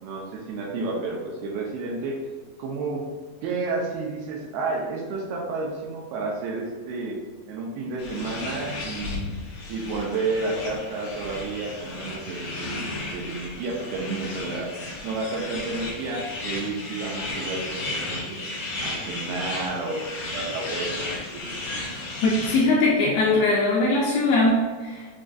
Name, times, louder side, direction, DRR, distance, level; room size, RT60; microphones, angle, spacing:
voice 1, 0.0-2.2 2.6-3.0 3.4-7.2 7.5-9.3 9.7-14.7 15.0-18.4 18.8-20.9 21.3-21.6, right 3 dB, 80° right, -1 dB, 2.4 m, -31 dB
sound 1, 8.0-22.7, left 2 dB, 65° left, 1.6 m, -34 dB
voice 2, 22.2-25.1, left 2 dB, 80° left, -4 dB, 2.1 m, -21 dB
6.3 x 2.3 x 2.5 m, 1.4 s
omnidirectional pair, 4.6 m